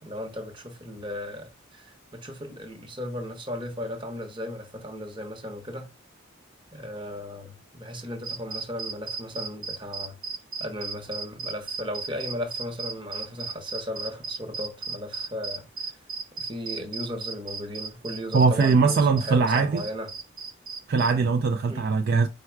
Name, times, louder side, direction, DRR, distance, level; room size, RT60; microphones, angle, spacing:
voice 1, 0.0-5.9 6.7-10.2 10.6-16.0 16.4-20.1 21.7-21.9, left 1 dB, 25° right, 0.9 m, -36 dB
sound 1, 8.2-21.1, right 4 dB, 85° right, 0.8 m, -34 dB
voice 2, 18.3-19.8 20.9-22.3, right 4 dB, 50° right, 0.3 m, -21 dB
4.5 x 2.1 x 4.5 m
head